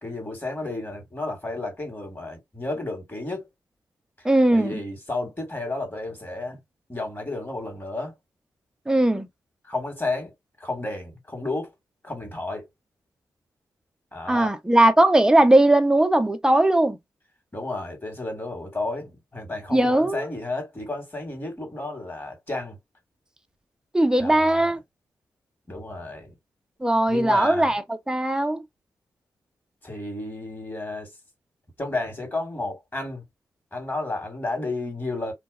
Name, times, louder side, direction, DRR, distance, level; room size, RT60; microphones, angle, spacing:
voice 1, 0.0-3.5 4.5-6.6 6.9-8.2 9.7-10.3 10.6-11.7 12.0-12.7 14.1-14.6 17.5-22.8 24.2-24.7 25.7-26.3 27.1-27.7 29.8-31.1 31.8-33.2 33.7-35.3, left 2 dB, 25° left, 1.8 m, -32 dB
voice 2, 4.2-4.8 8.9-9.3 14.3-17.0 19.7-20.3 23.9-24.8 26.8-28.6, right 1 dB, 10° right, 0.6 m, -19 dB
2.8 x 2.3 x 2.4 m
supercardioid pair, 40°, 8 cm